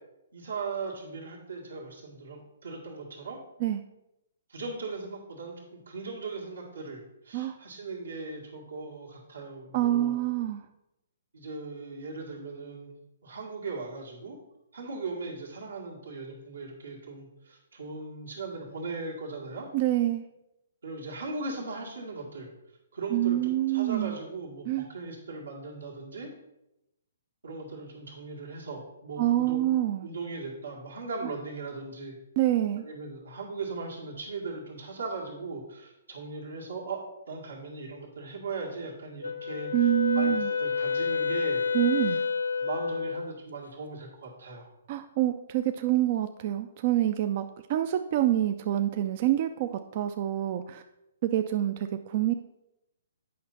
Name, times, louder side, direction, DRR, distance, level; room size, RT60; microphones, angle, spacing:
voice 1, 0.3-3.4 4.5-10.2 11.3-14.4 14.7-19.7 20.8-22.5 22.9-26.3 27.4-29.7 30.0-32.1 32.8-37.0 37.3-39.9 40.2-41.6 42.1-42.2 42.6-44.7, right 3 dB, 75° right, -1 dB, 1.8 m, -38 dB
voice 2, 9.7-10.6 19.7-20.2 23.1-24.2 24.7-24.9 29.2-30.1 32.4-32.8 39.7-40.5 41.7-42.2 44.9-50.8 51.2-52.3, right 13 dB, 40° right, 8 dB, 0.4 m, -26 dB
Wind instrument woodwind instrument, 39.2-43.3, left 5 dB, 90° left, 1.0 m, -29 dB
8.5 x 5.7 x 4.1 m, 0.89 s
figure-of-eight pair, 130°, 0 cm